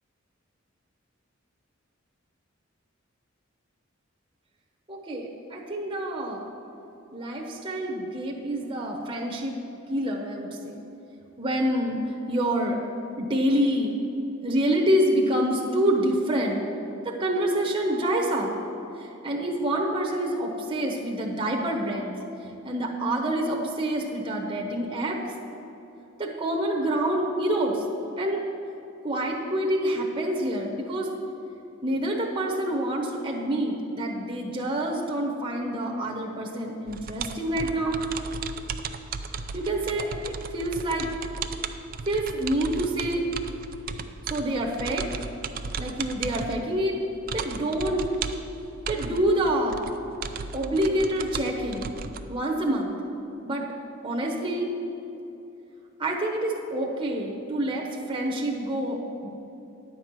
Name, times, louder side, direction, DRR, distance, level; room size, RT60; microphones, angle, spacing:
voice 1, 4.9-6.5 7.1-9.6 9.9-10.8 11.4-12.8 13.2-13.9 14.4-16.6 17.0-18.5 19.0-22.1 22.6-25.2 26.2-27.8 28.2-28.4 29.0-31.1 31.8-38.0 39.5-40.1 40.5-41.1 42.1-43.2 44.3-45.1 45.8-46.9 47.3-48.0 48.9-49.8 50.5-51.9 52.3-52.9 53.4-53.7 54.0-54.7 56.0-59.3, right 1 dB, 25° right, -1 dB, 1.0 m, -27 dB
sound 1, 36.9-52.2, right 5 dB, 45° right, 0.4 m, -36 dB
10.0 x 4.8 x 7.4 m, 2.8 s
head